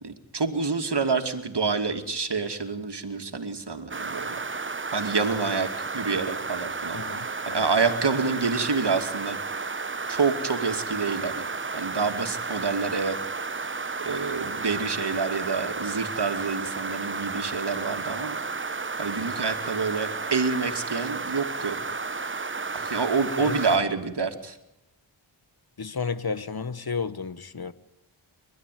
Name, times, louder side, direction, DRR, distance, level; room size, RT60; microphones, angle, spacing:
voice 1, 0.0-4.4 4.9-7.0 7.5-9.4 10.1-13.2 14.0-18.4 19.0-21.8 22.7-24.6, right 4 dB, 55° right, 2.6 m, -27 dB
sound 1, 3.9-23.8, right 4 dB, 25° right, 0.9 m, -32 dB
voice 2, 6.9-7.6 23.4-23.9 25.8-27.7, left 5 dB, 50° left, 1.4 m, -32 dB
30.0 x 13.0 x 9.4 m
cardioid pair, 45°, 48 cm